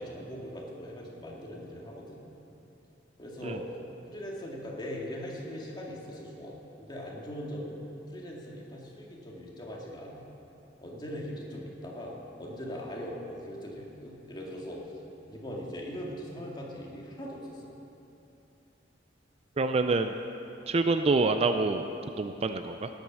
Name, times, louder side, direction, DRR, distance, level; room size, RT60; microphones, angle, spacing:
voice 1, 0.0-2.2 3.2-3.6 4.1-7.8 8.1-10.2 10.8-12.1 12.4-14.8 15.3-17.8, equal, 25° left, -3 dB, 2.2 m, -40 dB
voice 2, 19.6-20.1 20.7-21.8 22.2-22.9, right 3 dB, 35° right, 8 dB, 0.4 m, -26 dB
18.0 x 8.9 x 6.2 m, 2.9 s
head